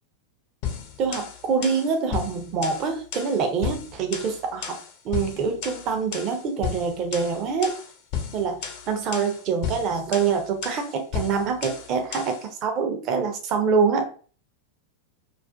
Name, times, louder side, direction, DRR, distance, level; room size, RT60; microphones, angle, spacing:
sound 1, 0.6-12.5, left 7 dB, 45° left, 0.5 m, -34 dB
voice 1, 1.0-4.8 5.0-7.8 8.3-8.6 8.9-14.1, right 5 dB, 35° right, 5 dB, 0.5 m, -25 dB
2.4 x 2.3 x 2.2 m, 0.40 s
figure-of-eight pair, 90°, 0 cm